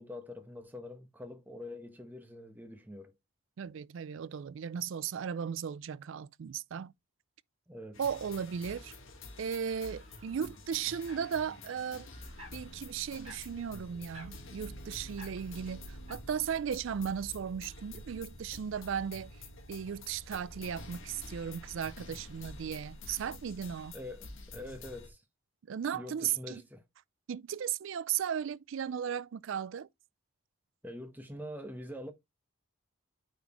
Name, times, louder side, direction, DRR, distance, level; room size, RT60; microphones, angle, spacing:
voice 1, 0.0-3.1 7.7-8.0 23.9-25.2 25.9-26.8 30.8-32.1, left 1 dB, 10° right, 1.0 m, -45 dB
voice 2, 3.6-6.9 8.0-8.9 9.4-12.1 12.5-19.3 19.7-23.9 25.7-26.6 27.3-29.9, right 8 dB, 65° right, 0.4 m, -36 dB
sound 1, 7.9-25.1, left 2 dB, 65° left, 1.4 m, -48 dB
sound 2, 8.5-16.1, equal, 30° right, 4.4 m, -57 dB
9.1 x 4.1 x 3.0 m
head